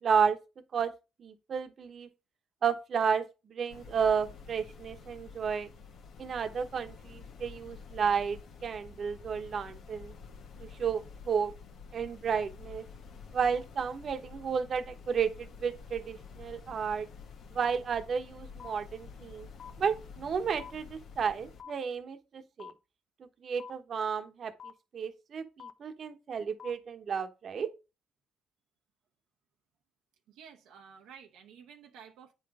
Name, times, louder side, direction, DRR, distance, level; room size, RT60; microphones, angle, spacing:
voice 1, 0.0-0.4 0.7-0.9 1.2-2.1 2.6-5.7 6.2-10.1 10.6-11.5 11.9-12.9 13.3-17.1 17.5-19.5 19.8-22.7 23.2-27.7, right 6 dB, 55° right, 1.0 m, -32 dB
sound 1, 3.7-21.6, left 5 dB, 70° left, 1.2 m, -50 dB
sound 2, 17.6-17.7 18.6-18.7 19.6-19.7 20.6-20.7 21.6-21.7 22.6-22.7 23.6-23.7 24.6-24.7 25.6-25.7 26.6-26.7, left 7 dB, 50° left, 0.8 m, -45 dB
voice 2, 30.3-32.3, right 7 dB, 90° right, 0.8 m, -52 dB
9.1 x 4.1 x 4.8 m
cardioid pair, 90°, 0 cm